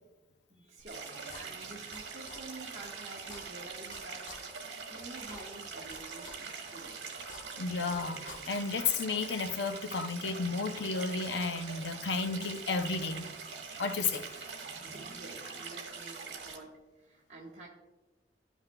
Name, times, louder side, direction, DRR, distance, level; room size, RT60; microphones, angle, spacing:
voice 1, 0.5-1.1 1.3-7.0 14.8-17.7, right 2 dB, 40° right, 1.3 m, -49 dB
sound 1, 0.8-0.9 1.3-2.0 2.3-2.4 2.8-2.9 3.2-4.0 4.3-4.4 4.8-4.9 5.2-6.0 6.2-6.4 6.8-6.9 7.2-8.0 8.3-8.4, left 3 dB, 50° left, 1.0 m, -49 dB
Stream, 0.9-16.6, right 5 dB, 80° right, 1.4 m, -43 dB
voice 2, 7.5-13.2 13.8-14.3, left 4 dB, 75° left, 0.6 m, -33 dB
13.0 x 5.8 x 2.3 m
head